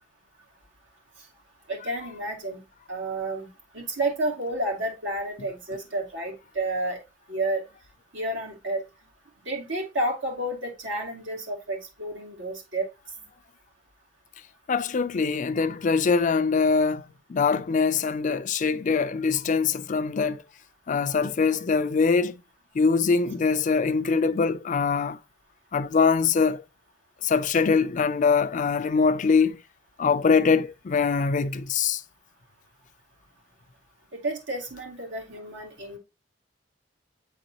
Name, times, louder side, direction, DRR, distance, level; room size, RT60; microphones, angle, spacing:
voice 1, 1.7-2.6 2.9-3.5 3.7-7.0 7.3-7.6 8.1-8.8 9.5-12.9 34.1-36.0, right 1 dB, 80° right, 2.6 m, -30 dB
voice 2, 14.7-17.0 17.3-20.4 20.9-22.4 22.8-25.2 25.7-26.6 27.2-29.6 30.0-32.0, left 5 dB, 40° left, 0.4 m, -23 dB
8.3 x 4.0 x 2.8 m
head